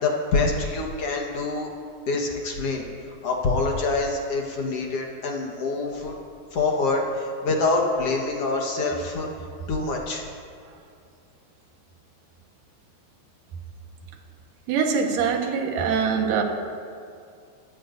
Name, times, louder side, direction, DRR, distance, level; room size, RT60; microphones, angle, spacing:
voice 1, 0.0-1.7 2.1-2.8 3.2-6.1 6.5-9.3 9.7-10.2, left 3 dB, 60° left, 0 dB, 1.7 m, -25 dB
voice 2, 14.7-16.4, right 6 dB, 70° right, 2 dB, 2.8 m, -23 dB
26.5 x 14.0 x 2.6 m, 2.3 s
omnidirectional pair, 4.4 m